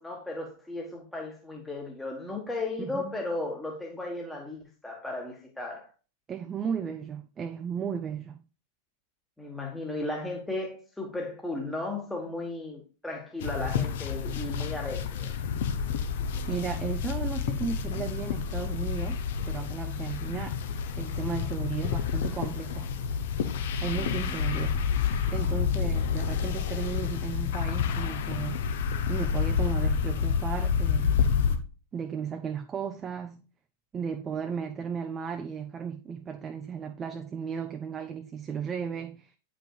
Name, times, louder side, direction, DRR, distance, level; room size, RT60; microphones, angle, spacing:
voice 1, 0.0-5.9 9.4-15.3 24.0-24.4, left 2 dB, 5° left, 1.2 m, -35 dB
voice 2, 2.8-3.1 6.3-8.4 16.5-20.6 21.0-22.9 23.8-24.8 25.3-28.6 29.1-31.2 31.9-33.4 33.9-39.3, right 7 dB, 25° right, 0.5 m, -35 dB
sound 1, 13.4-31.6, left 7 dB, 55° left, 0.7 m, -29 dB
8.8 x 5.1 x 2.3 m
figure-of-eight pair, 90°, 0 cm